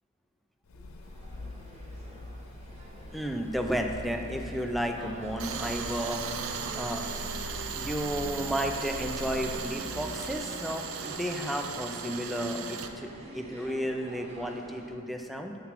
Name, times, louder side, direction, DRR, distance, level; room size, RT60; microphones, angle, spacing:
sound 1, 0.6-10.5, left 1 dB, 70° left, 0.5 m, -43 dB
sound 2, 1.0-15.0, right 1 dB, 30° right, 0.7 m, -48 dB
voice 1, 3.1-6.2 6.7-7.0 7.4-7.5 7.7-15.6, equal, ahead, 3 dB, 0.3 m, -33 dB
Tools, 5.4-12.9, right 6 dB, 75° right, 0.5 m, -37 dB
7.4 x 3.9 x 4.7 m, 2.6 s
head